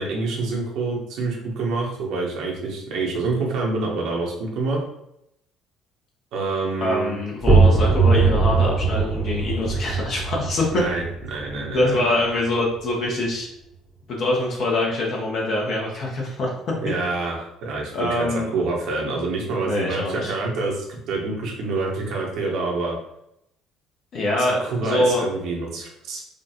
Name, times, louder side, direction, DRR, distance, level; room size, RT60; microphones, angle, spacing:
voice 1, 0.0-4.8 6.3-7.1 10.7-12.0 16.8-23.0 24.4-26.2, right 3 dB, 60° right, -2 dB, 0.9 m, -27 dB
voice 2, 6.8-10.8 11.7-13.5 14.1-16.5 17.9-18.5 19.6-20.3 24.1-25.2, left 1 dB, 50° left, -2 dB, 1.0 m, -24 dB
sound 1, 7.4-13.0, right 4 dB, 30° right, 0.8 m, -21 dB
5.0 x 2.4 x 2.8 m, 0.79 s
figure-of-eight pair, 50°, 0 cm